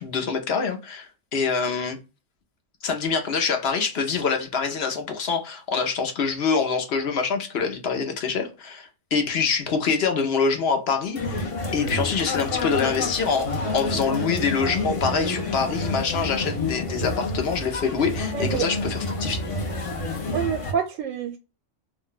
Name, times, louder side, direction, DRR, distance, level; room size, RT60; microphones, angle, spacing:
voice 1, 0.0-2.0 2.8-19.4, left 5 dB, 60° left, 0.9 m, -25 dB
sound 1, 11.1-20.7, left 2 dB, 35° left, 0.6 m, -29 dB
voice 2, 18.3-18.7 20.3-21.4, right 8 dB, 85° right, 0.9 m, -27 dB
2.5 x 2.2 x 3.7 m
omnidirectional pair, 1.3 m